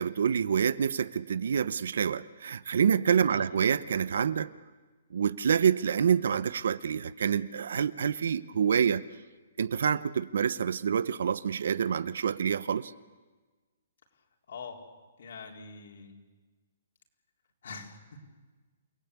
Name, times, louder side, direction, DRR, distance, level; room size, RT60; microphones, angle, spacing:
voice 1, 0.0-4.5 5.1-9.0 9.6-12.9, right 7 dB, 65° right, 17 dB, 0.8 m, -27 dB
voice 2, 14.5-14.8 15.2-16.1 17.6-18.0, left 5 dB, 60° left, 1 dB, 4.1 m, -44 dB
29.0 x 18.0 x 8.4 m, 1.3 s
hypercardioid pair, 170°, 0 cm